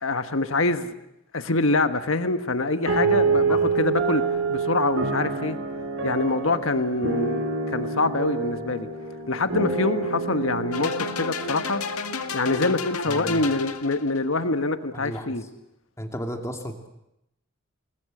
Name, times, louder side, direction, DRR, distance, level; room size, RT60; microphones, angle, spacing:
voice 1, 0.0-0.9 1.3-4.2 4.5-5.6 6.0-8.9 9.3-11.8 12.3-15.4, left 3 dB, 65° left, 9 dB, 1.4 m, -25 dB
sound 1, 2.9-12.6, right 4 dB, 60° right, 4.4 m, -27 dB
voice 2, 3.0-3.7 13.1-13.5 14.9-15.3 16.0-16.9, equal, 15° left, 4 dB, 2.6 m, -34 dB
sound 2, 10.7-14.2, left 5 dB, 90° left, 1.9 m, -32 dB
29.5 x 21.0 x 7.9 m, 0.84 s
head